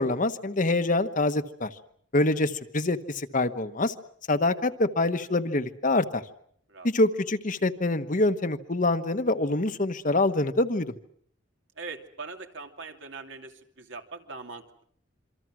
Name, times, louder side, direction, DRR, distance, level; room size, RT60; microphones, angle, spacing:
voice 1, 0.0-1.7 2.1-3.9 4.3-6.2 6.8-10.9, left 2 dB, 45° left, 10 dB, 1.2 m, -25 dB
voice 2, 11.8-14.8, right 4 dB, 70° right, 5 dB, 2.7 m, -41 dB
27.0 x 25.0 x 6.2 m, 0.63 s
head